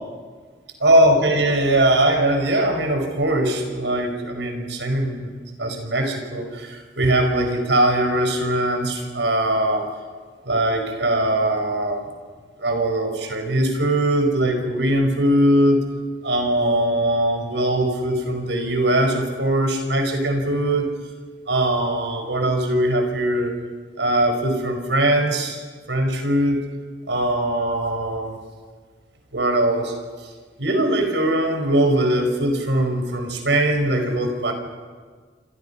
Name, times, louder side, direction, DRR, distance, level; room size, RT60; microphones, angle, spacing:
voice 1, 0.8-5.3 5.6-9.9 10.4-12.0 12.6-15.8 16.2-20.9 21.5-23.5 24.0-25.6 25.9-26.6 27.1-28.4 29.3-29.9 30.6-34.5, right 1 dB, 85° right, 4 dB, 5.1 m, -21 dB
29.5 x 26.5 x 5.7 m, 1.5 s
head